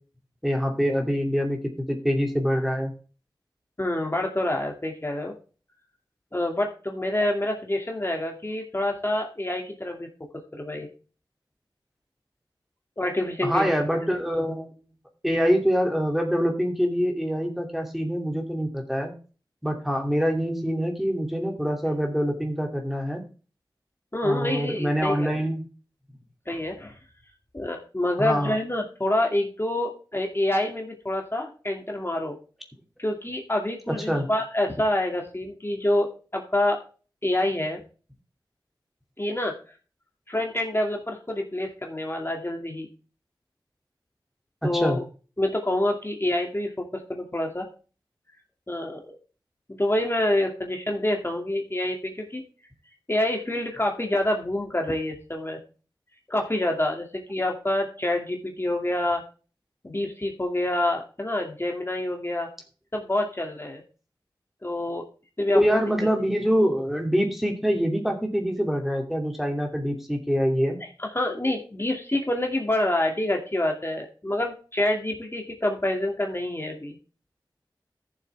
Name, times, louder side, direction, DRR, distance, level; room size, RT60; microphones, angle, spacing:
voice 1, 0.4-2.9 13.4-14.7 15.2-19.1 19.6-23.2 24.2-25.6 28.2-28.6 33.9-34.3 44.6-45.0 65.5-70.8, equal, 5° right, 2 dB, 2.7 m, -25 dB
voice 2, 3.8-5.3 6.3-10.1 10.5-10.9 13.0-13.8 24.1-25.3 26.5-26.9 27.5-32.3 33.0-36.8 37.2-37.8 39.2-39.5 40.3-42.9 44.6-45.0 45.4-47.7 48.7-49.0 49.8-52.4 53.1-55.6 56.3-59.2 59.8-62.5 62.9-63.8 64.6-65.0 65.4-65.8 71.0-77.0, left 1 dB, 30° left, 2 dB, 2.4 m, -27 dB
14.0 x 7.4 x 3.5 m, 0.36 s
wide cardioid pair, 60°, 8 cm